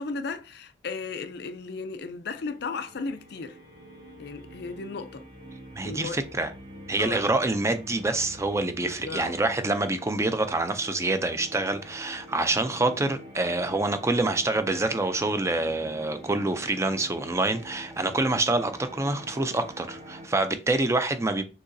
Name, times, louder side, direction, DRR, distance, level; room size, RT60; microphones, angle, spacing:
voice 1, 0.0-3.6 4.2-5.2 5.8-6.2 7.0-7.2 8.8-9.3, left 4 dB, 60° left, 0.5 m, -35 dB
sound 1, 2.4-20.3, equal, 45° right, 1.9 m, -46 dB
voice 2, 5.7-6.5 6.9-21.4, right 2 dB, 15° right, 0.4 m, -26 dB
6.4 x 2.9 x 2.6 m
head